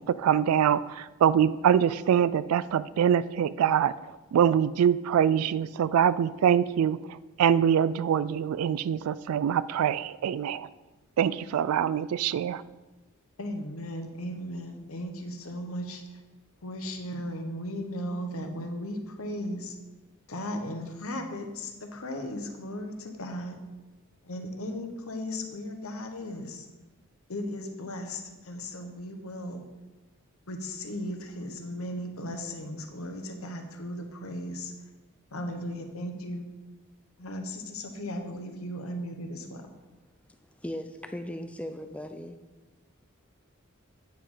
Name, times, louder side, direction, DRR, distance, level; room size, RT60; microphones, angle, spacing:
voice 1, 0.0-3.9 4.3-10.7 11.2-12.6, right 8 dB, 90° right, 16 dB, 0.3 m, -24 dB
voice 2, 13.4-16.2 16.6-19.8 20.3-23.6 24.2-26.7 27.3-29.6 30.5-34.7 35.3-36.5 37.2-39.7, left 1 dB, 80° left, 5 dB, 1.1 m, -36 dB
voice 3, 40.6-42.4, left 1 dB, 5° left, 7 dB, 0.4 m, -37 dB
9.0 x 5.1 x 5.5 m, 1.2 s
head